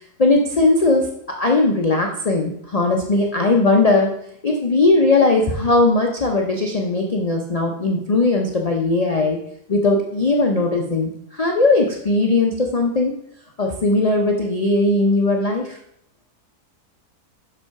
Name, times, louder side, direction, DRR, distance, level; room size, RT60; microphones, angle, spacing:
voice 1, 0.2-4.1 4.4-9.4 9.7-13.1 13.6-15.8, left 2 dB, 75° left, 1 dB, 0.3 m, -18 dB
6.2 x 5.4 x 4.6 m, 0.73 s
omnidirectional pair, 1.7 m